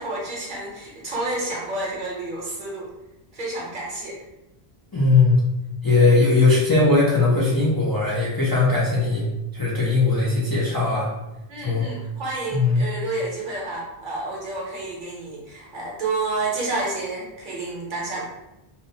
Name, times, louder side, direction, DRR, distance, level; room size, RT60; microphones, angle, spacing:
voice 1, 0.0-2.9 3.3-4.2 11.5-18.3, right 2 dB, 55° right, -3 dB, 0.9 m, -30 dB
voice 2, 4.9-5.4 5.8-9.3 9.5-11.1 11.6-11.9 12.5-12.8, left 3 dB, 40° left, -7 dB, 0.3 m, -19 dB
2.8 x 2.0 x 2.6 m, 0.97 s
omnidirectional pair, 1.0 m